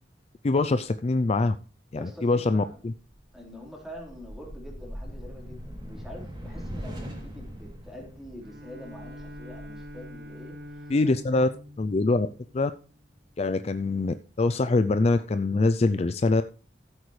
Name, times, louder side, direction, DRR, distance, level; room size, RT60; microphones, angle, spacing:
voice 1, 0.4-1.6 1.9-2.9 10.9-11.5 11.8-12.3 12.5-12.7 13.4-16.4, left 3 dB, 35° left, 12 dB, 0.4 m, -24 dB
voice 2, 2.0-2.8 3.3-11.5, equal, ahead, -2 dB, 4.0 m, -45 dB
sound 1, 3.1-11.3, equal, 25° right, 2.9 m, -42 dB
Bowed string instrument, 8.4-13.1, equal, 65° right, 1.3 m, -45 dB
15.0 x 8.1 x 3.2 m, 0.37 s
head